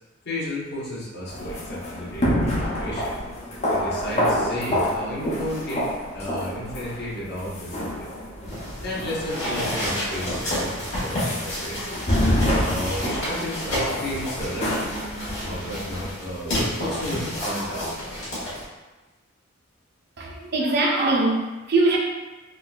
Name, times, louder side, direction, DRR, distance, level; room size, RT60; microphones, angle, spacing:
voice 1, 0.2-3.2 3.7-5.9 6.1-8.1 8.7-11.9 12.4-14.9 15.4-17.9, equal, 60° left, -7 dB, 0.9 m, -33 dB
sound 1, 1.3-16.1, equal, 35° left, 0.6 m, -28 dB
sound 2, 8.5-18.7, equal, 85° left, 1.3 m, -30 dB
voice 2, 20.2-22.0, right 2 dB, 55° right, -1 dB, 0.5 m, -22 dB
3.6 x 2.3 x 2.4 m, 1.2 s
head